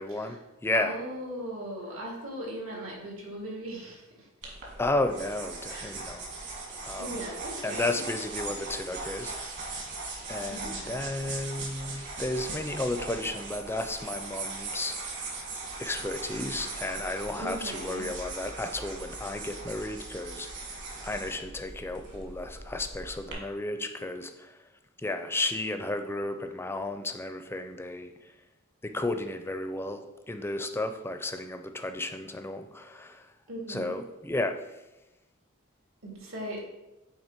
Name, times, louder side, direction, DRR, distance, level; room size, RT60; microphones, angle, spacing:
voice 1, 0.0-1.0 4.8-6.3 6.8-7.2 7.6-9.3 10.3-15.0 15.8-20.5 21.0-24.5 25.0-28.1 28.8-33.2 33.7-34.6, left 2 dB, 10° left, 7 dB, 0.4 m, -33 dB
voice 2, 0.7-4.5 5.7-6.0 7.0-8.0 10.5-11.3 17.4-18.2 22.0-22.4 33.5-34.0 36.0-36.6, right 1 dB, 85° right, -2 dB, 2.0 m, -39 dB
sound 1, 4.4-23.3, right 3 dB, 60° right, 1.6 m, -39 dB
8.8 x 3.2 x 4.4 m, 1.0 s
head